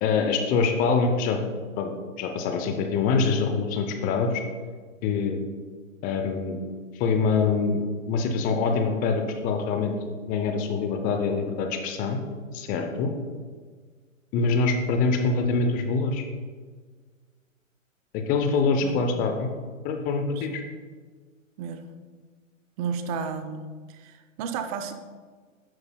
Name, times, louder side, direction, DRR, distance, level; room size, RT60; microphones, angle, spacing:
voice 1, 0.0-1.4 1.8-1.9 2.2-4.4 5.0-5.4 6.0-6.6 6.9-9.9 10.3-12.2 12.5-13.1 14.3-16.2 18.1-19.5 19.8-20.6, left 4 dB, 20° left, 5 dB, 0.6 m, -25 dB
voice 2, 18.5-19.0 20.4-20.6 21.6-21.9 22.8-24.9, right 6 dB, 30° right, 8 dB, 0.6 m, -33 dB
11.0 x 7.9 x 2.2 m, 1.5 s
hypercardioid pair, 120°, 40 cm